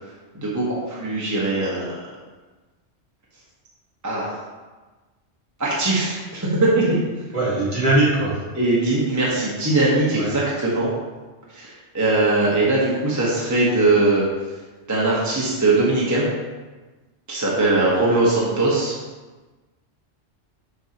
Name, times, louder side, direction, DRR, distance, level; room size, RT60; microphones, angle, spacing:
voice 1, 0.3-2.0 4.0-4.3 5.6-7.0 8.5-10.9 11.5-14.2 14.9-16.3 17.3-18.9, right 2 dB, 15° right, -6 dB, 1.1 m, -20 dB
voice 2, 7.3-8.4 10.1-10.3, right 2 dB, 45° right, -7 dB, 1.9 m, -20 dB
6.4 x 6.3 x 2.9 m, 1.3 s
omnidirectional pair, 1.2 m